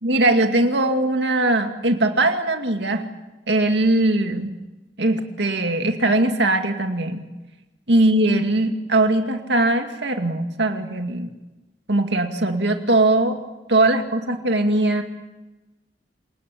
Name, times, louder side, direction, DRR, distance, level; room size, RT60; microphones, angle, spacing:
voice 1, 0.0-3.1 3.5-4.5 5.0-7.3 7.9-11.3 11.9-13.4 13.7-15.0, right 2 dB, 70° right, 5 dB, 2.2 m, -20 dB
27.5 x 19.0 x 8.5 m, 1.1 s
head